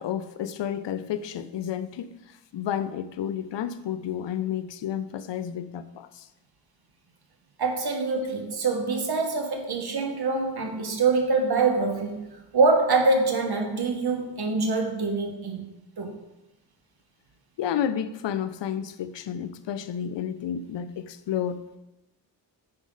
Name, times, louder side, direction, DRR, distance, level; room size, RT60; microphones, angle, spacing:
voice 1, 0.0-6.3 17.6-21.6, left 9 dB, 85° left, 0.6 m, -31 dB
voice 2, 7.6-15.7 16.0-16.1, right 3 dB, 65° right, 1.4 m, -25 dB
8.9 x 5.2 x 3.8 m
cardioid pair, 70°, 42 cm